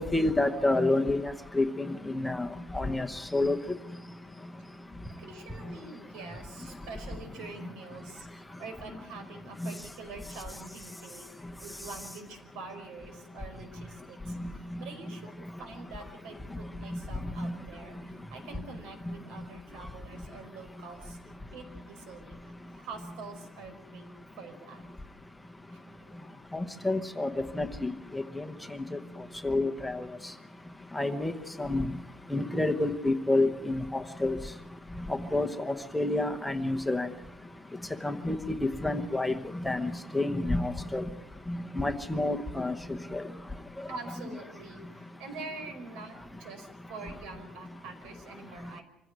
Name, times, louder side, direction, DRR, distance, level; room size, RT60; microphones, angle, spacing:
voice 1, 0.0-2.5 2.7-3.1 3.3-3.6 9.6-9.7 17.4-17.5 26.5-27.3 27.5-28.5 29.4-30.1 30.9-31.3 31.6-31.9 32.3-34.4 35.1-37.1 38.0-39.3 39.6-41.0 41.5-42.7 43.1-43.2, left 2 dB, 5° left, 6 dB, 0.9 m, -29 dB
voice 2, 5.2-15.3 15.6-21.2 21.5-24.1 24.4-24.8 25.7-25.8 26.1-26.3 43.9-48.8, right 4 dB, 85° right, 7 dB, 5.1 m, -46 dB
25.5 x 16.0 x 9.4 m, 0.91 s
cardioid pair, 175°, 0 cm